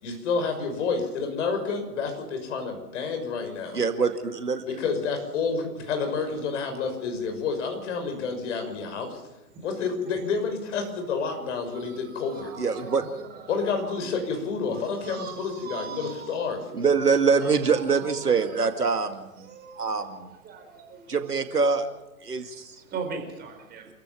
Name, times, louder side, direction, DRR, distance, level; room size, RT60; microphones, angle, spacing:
voice 1, 0.0-3.8 4.7-9.2 9.6-12.5 13.5-16.7, left 5 dB, 50° left, 5 dB, 6.3 m, -29 dB
voice 2, 3.7-4.6 12.6-13.2 16.7-19.5 19.8-20.3 21.1-21.9 22.2-22.7, right 5 dB, 80° right, 8 dB, 2.3 m, -24 dB
voice 3, 11.7-14.1 14.7-16.5 16.8-16.9 17.4-18.8 19.4-21.2 22.8-23.9, right 5 dB, 20° right, 4 dB, 4.6 m, -41 dB
28.5 x 15.0 x 7.4 m, 0.99 s
figure-of-eight pair, 120°, 46 cm